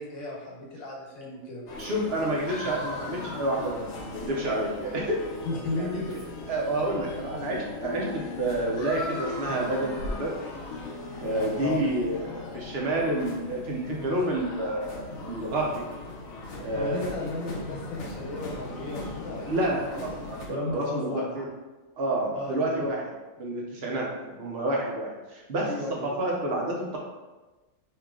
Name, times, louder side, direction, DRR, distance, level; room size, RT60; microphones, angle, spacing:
voice 1, 0.0-1.6 5.4-6.1 11.3-11.8 16.7-19.5 20.5-21.5 22.3-22.8 25.6-26.1, left 2 dB, 80° left, -3 dB, 1.3 m, -34 dB
sound 1, 1.7-20.5, left 2 dB, 65° left, 0.9 m, -38 dB
voice 2, 1.7-3.8 4.1-5.3 5.7-5.9 6.5-10.3 11.2-15.8 16.6-17.2 19.4-21.5 22.0-23.0 23.4-24.1 24.4-25.7 26.0-27.0, right 1 dB, 55° right, -2 dB, 0.9 m, -29 dB
3.0 x 2.8 x 3.6 m, 1.2 s
omnidirectional pair, 1.4 m